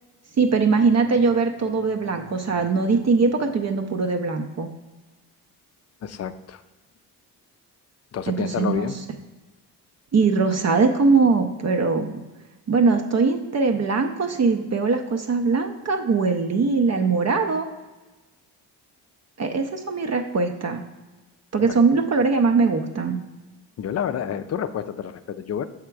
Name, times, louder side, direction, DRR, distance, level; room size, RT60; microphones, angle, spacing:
voice 1, 0.4-4.7 8.3-8.9 10.1-12.2 12.7-17.7 19.4-20.8 21.5-23.2, right 4 dB, 40° right, 5 dB, 0.6 m, -21 dB
voice 2, 6.0-6.6 8.1-9.0 21.6-21.8 23.8-25.6, left 8 dB, 40° left, 12 dB, 0.5 m, -29 dB
6.6 x 3.6 x 4.6 m, 1.2 s
supercardioid pair, 70°, 42 cm